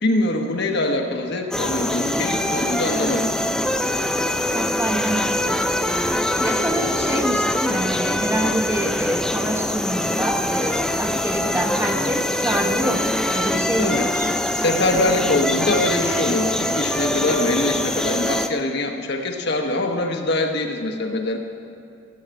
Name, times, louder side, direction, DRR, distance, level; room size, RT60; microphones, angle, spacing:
voice 1, 0.0-3.3 13.8-14.1 14.5-21.4, left 2 dB, 55° left, 3 dB, 1.0 m, -23 dB
sound 1, 1.5-18.5, left 1 dB, 5° left, 0.3 m, -23 dB
voice 2, 4.5-5.6 6.0-14.3, equal, 10° right, 2 dB, 0.9 m, -26 dB
15.0 x 6.4 x 7.6 m, 2.5 s
head